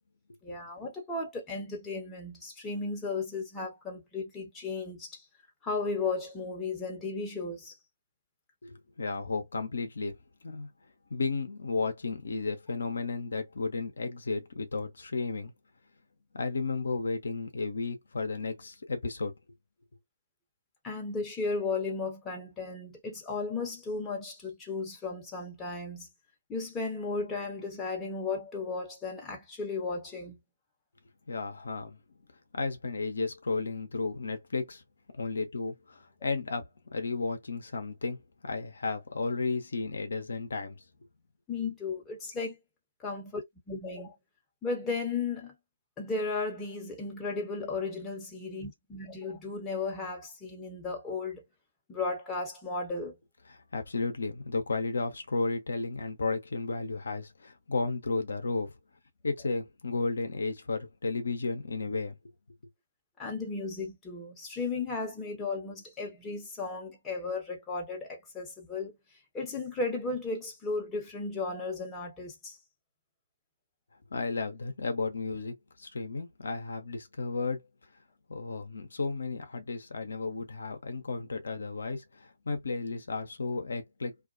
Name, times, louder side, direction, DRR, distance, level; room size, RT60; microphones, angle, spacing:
voice 1, 0.4-5.2 5.6-7.8 20.8-26.1 26.5-30.4 41.5-42.6 43.0-43.4 43.7-44.2 44.6-45.5 46.0-51.4 51.9-53.2 63.2-69.0 69.3-72.6, left 3 dB, 15° left, 0.7 m, -35 dB
voice 2, 8.6-10.2 10.4-10.7 11.1-15.5 16.3-19.3 31.3-32.0 32.5-34.8 35.1-40.8 53.5-58.7 59.2-62.3 74.1-77.6 78.3-84.1, left 3 dB, 65° left, 0.6 m, -33 dB
2.3 x 2.2 x 2.4 m
figure-of-eight pair, 135°, 0 cm